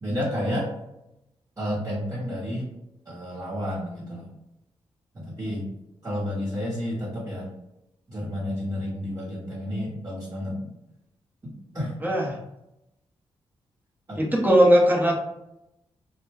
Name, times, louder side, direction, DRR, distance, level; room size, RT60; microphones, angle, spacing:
voice 1, 0.0-0.7 1.6-2.7 3.0-4.3 5.1-5.7 6.0-7.5 8.1-10.7 11.4-11.9 14.1-14.2, equal, 35° right, -8 dB, 1.1 m, -31 dB
voice 2, 12.0-12.4 14.1-15.2, equal, 15° right, -2 dB, 0.9 m, -19 dB
2.2 x 2.2 x 3.3 m, 0.87 s
cardioid pair, 70°, 11 cm